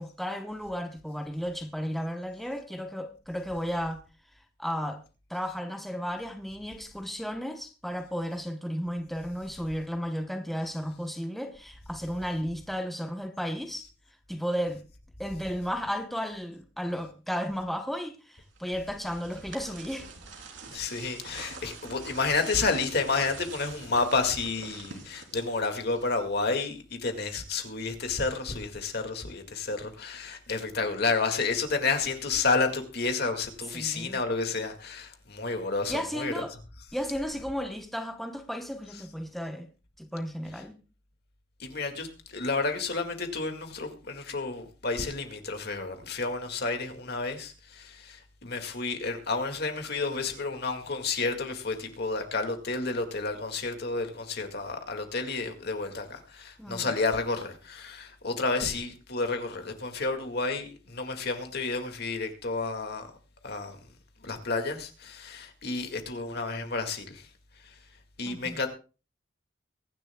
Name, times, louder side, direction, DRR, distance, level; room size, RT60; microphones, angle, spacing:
voice 1, 0.0-4.0 4.6-5.0 5.3-13.9 14.3-14.8 15.2-20.1 33.7-34.2 35.9-36.5 36.9-39.7 40.0-40.8 56.6-56.9 68.3-68.6, equal, ahead, 0.9 m, -34 dB
sound 1, 18.6-26.4, right 4 dB, 85° right, 3.3 m, -45 dB
voice 2, 20.7-36.4 41.6-63.1 63.4-63.8 64.2-67.3 67.6-67.8 68.2-68.7, left 3 dB, 60° left, 2.0 m, -31 dB
23.0 x 10.5 x 2.3 m
head